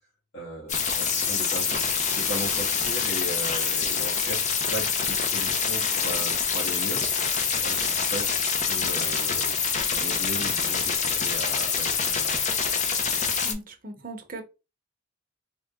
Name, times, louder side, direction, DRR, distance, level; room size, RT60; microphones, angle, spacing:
voice 1, 0.3-1.8 2.1-12.3, equal, 55° left, 1.4 m, -37 dB
sound 1, 0.7-13.5, left 6 dB, 35° left, 0.6 m, -26 dB
voice 2, 13.4-14.4, right 2 dB, 45° right, 0.8 m, -38 dB
3.7 x 2.2 x 3.5 m
head